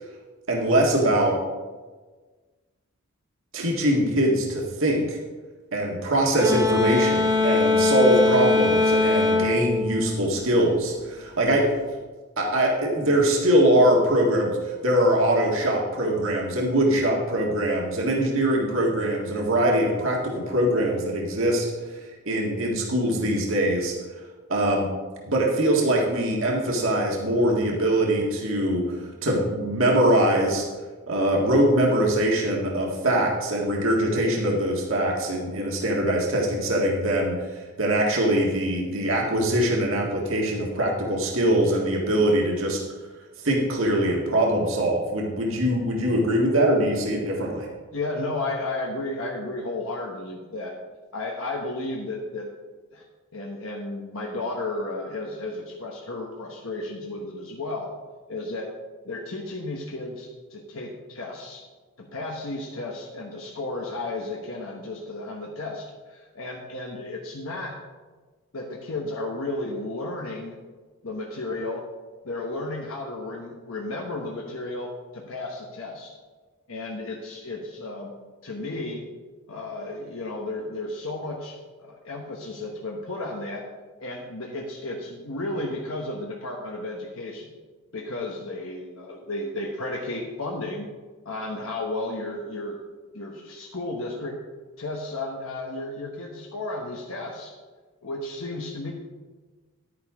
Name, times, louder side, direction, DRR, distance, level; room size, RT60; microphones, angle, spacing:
voice 1, 0.5-1.3 3.5-5.2 5.7-11.6 12.4-21.7 22.2-23.9 24.5-24.9 25.3-29.0 29.2-30.6 31.1-42.8 43.4-47.7, right 1 dB, 60° right, -1 dB, 1.7 m, -22 dB
sound 1, 6.4-10.8, left 3 dB, 20° right, 1.7 m, -22 dB
voice 2, 47.9-50.7 51.1-52.5 52.9-53.0 53.3-57.9 58.3-58.7 59.0-61.6 62.0-67.8 68.5-70.6 71.0-71.8 72.2-76.1 76.7-78.1 78.4-79.0 79.5-83.6 84.0-87.5 87.9-90.9 91.2-92.8 93.1-94.4 94.8-97.5 98.0-98.9, left 2 dB, 65° left, -1 dB, 1.2 m, -33 dB
11.0 x 9.6 x 3.7 m, 1.3 s
head